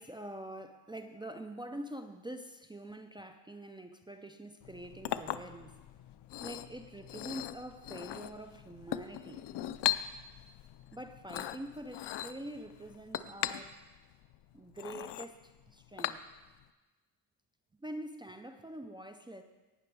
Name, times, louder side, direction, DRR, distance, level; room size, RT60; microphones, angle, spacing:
voice 1, 0.0-5.7 6.4-9.4 10.9-13.8 14.5-16.2 17.8-19.4, right 1 dB, 10° right, 6 dB, 0.4 m, -45 dB
Chink clink, 4.6-16.6, left 13 dB, 65° left, 0.6 m, -39 dB
18.0 x 5.9 x 4.7 m, 1.2 s
cardioid pair, 135°, 45 cm